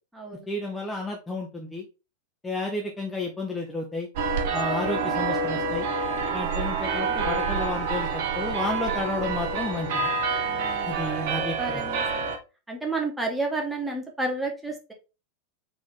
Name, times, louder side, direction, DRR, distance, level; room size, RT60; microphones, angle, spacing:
voice 1, 0.5-1.8 2.4-4.1 4.5-5.9 6.3-10.1 10.9-11.8, left 2 dB, 10° left, 0 dB, 0.7 m, -31 dB
sound 1, 4.2-12.4, right 4 dB, 50° right, 0.8 m, -27 dB
voice 2, 10.4-11.3 11.6-12.2 12.7-14.9, right 2 dB, 10° right, 0 dB, 1.3 m, -31 dB
4.2 x 2.9 x 3.6 m, 0.30 s
figure-of-eight pair, 90°, 0 cm